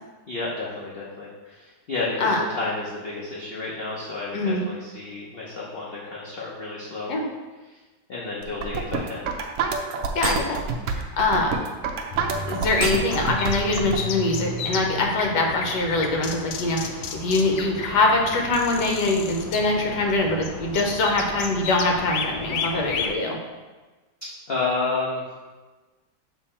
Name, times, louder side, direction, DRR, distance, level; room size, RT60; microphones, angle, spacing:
voice 1, 0.3-7.2 8.1-9.3 24.5-25.2, left 3 dB, 50° left, -5 dB, 0.7 m, -31 dB
voice 2, 4.3-4.7 7.1-7.2 10.1-10.6 11.2-11.5 12.5-23.4, left 2 dB, 70° left, 1 dB, 1.5 m, -23 dB
sound 1, 8.4-14.0, right 5 dB, 90° right, 0.6 m, -27 dB
sound 2, 12.1-23.1, left 5 dB, 90° left, 1.3 m, -33 dB
6.9 x 3.2 x 4.3 m, 1.3 s
omnidirectional pair, 2.0 m